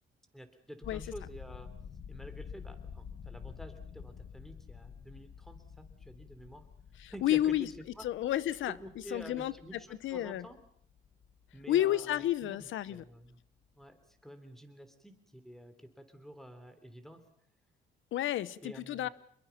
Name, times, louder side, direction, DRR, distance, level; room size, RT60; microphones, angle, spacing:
voice 1, 0.3-1.7 2.1-6.7 7.1-8.1 8.7-10.6 11.5-13.4 13.8-17.3 18.6-19.1, equal, ahead, 3.4 m, -49 dB
sound 1, 0.8-12.7 12.9-13.3 13.6-13.8, left 6 dB, 55° left, 2.0 m, -49 dB
voice 2, 7.0-7.7 8.0-8.7 9.1-9.5 10.0-10.5 11.7-13.0 18.1-19.1, left 13 dB, 75° left, 0.8 m, -31 dB
26.0 x 22.0 x 5.8 m
cardioid pair, 90°, 20 cm